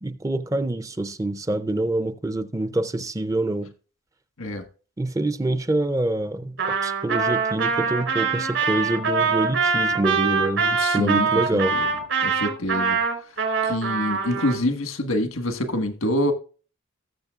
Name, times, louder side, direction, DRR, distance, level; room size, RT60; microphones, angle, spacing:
voice 1, 0.0-3.7 5.0-11.8, right 2 dB, 15° right, 0.4 m, -26 dB
Trumpet, 6.6-14.6, right 5 dB, 70° right, 3.8 m, -23 dB
voice 2, 10.7-11.3 11.7-11.9 12.2-13.0 13.6-16.3, left 1 dB, 90° left, 1.4 m, -26 dB
19.0 x 7.3 x 2.4 m
head